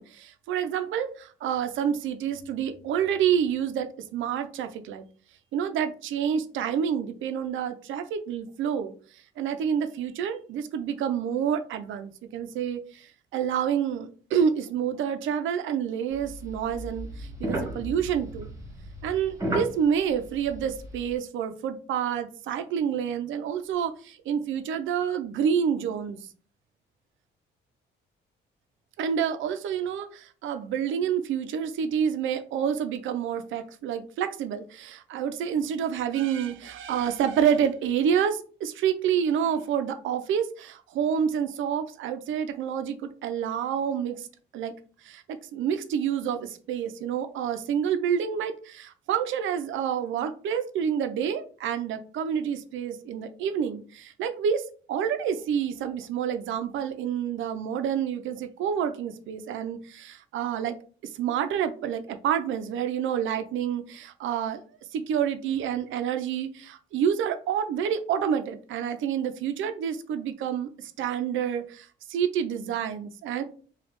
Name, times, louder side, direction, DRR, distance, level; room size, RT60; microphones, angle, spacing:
voice 1, 0.0-5.0 5.5-8.9 9.4-18.5 19.0-26.2 29.0-44.3 44.5-44.7 45.0-60.7 61.0-64.6 64.9-73.4, right 8 dB, 75° right, 9 dB, 0.5 m, -28 dB
sound 1, 16.1-21.1, right 1 dB, 15° right, 1.1 m, -35 dB
3.1 x 2.3 x 3.0 m, 0.41 s
cardioid pair, 90°, 20 cm